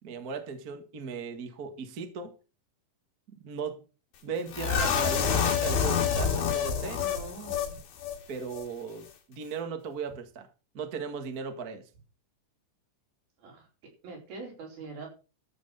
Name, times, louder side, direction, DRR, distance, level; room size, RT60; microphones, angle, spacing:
voice 1, 0.0-2.3 3.3-3.8 4.2-7.0 8.3-10.5 10.7-11.9, right 5 dB, 40° right, 7 dB, 1.4 m, -37 dB
sound 1, 4.5-7.7 8.0-8.2 8.5-8.6, left 7 dB, 85° left, 4.0 m, -27 dB
voice 2, 7.0-7.8 13.4-13.7 14.0-15.1, right 3 dB, 80° right, 0 dB, 6.1 m, -43 dB
13.5 x 6.4 x 6.8 m, 0.34 s
omnidirectional pair, 4.2 m